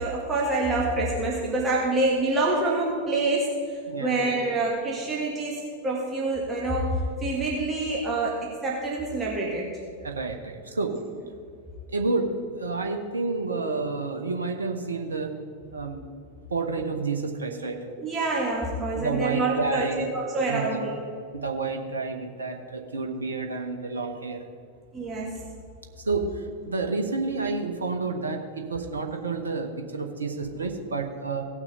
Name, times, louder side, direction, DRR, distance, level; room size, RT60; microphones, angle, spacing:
voice 1, 0.0-9.7 13.5-13.6 17.9-19.9 20.1-20.9 24.9-25.3, right 2 dB, 15° right, -4 dB, 1.9 m, -27 dB
voice 2, 3.9-4.2 10.0-10.9 11.9-12.3 12.6-15.3 15.7-16.0 16.5-17.8 19.0-20.1 20.5-20.8 21.3-24.4 26.0-31.4, right 3 dB, 75° right, 3 dB, 1.1 m, -29 dB
17.5 x 6.1 x 3.9 m, 2.2 s
figure-of-eight pair, 90°, 0 cm